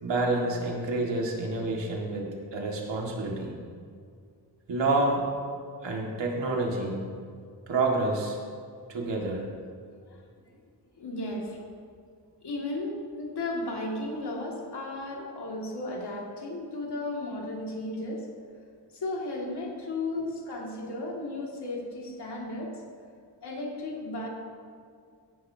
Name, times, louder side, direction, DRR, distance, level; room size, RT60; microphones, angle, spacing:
voice 1, 0.0-3.5 4.7-5.2 5.8-7.0 7.7-8.4 8.9-9.5, right 2 dB, 85° right, -1 dB, 2.1 m, -28 dB
voice 2, 11.0-11.6 12.4-18.2 18.9-22.7 23.4-24.3, left 2 dB, 65° left, -2 dB, 2.3 m, -34 dB
16.5 x 10.5 x 2.8 m, 2.2 s
wide cardioid pair, 90°, 43 cm